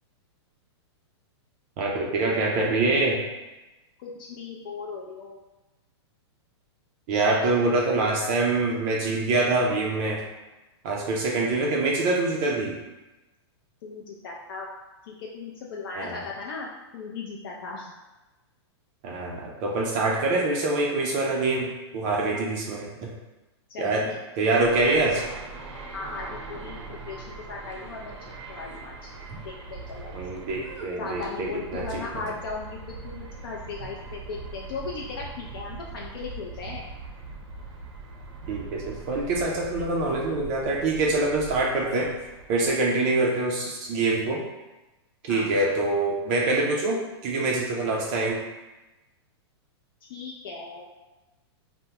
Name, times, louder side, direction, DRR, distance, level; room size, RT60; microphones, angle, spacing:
voice 1, 1.8-3.2 7.1-10.2 10.8-12.8 15.9-16.2 19.0-23.1 23.8-24.1 24.4-25.2 29.3-29.4 30.1-32.2 38.5-42.1 42.5-44.4 45.2-48.4, right 2 dB, 30° right, -1 dB, 0.4 m, -25 dB
voice 2, 4.0-5.4 13.8-14.7 15.0-17.9 23.7-24.2 25.9-26.8 27.1-28.2 28.5-29.0 29.4-30.4 31.0-36.8 42.7-42.8 45.3-45.7 50.1-50.9, left 4 dB, 55° left, -2 dB, 0.4 m, -37 dB
sound 1, 24.6-42.9, right 3 dB, 90° right, 0.6 m, -41 dB
3.4 x 2.0 x 2.8 m, 1.1 s
hypercardioid pair, 160°, 14 cm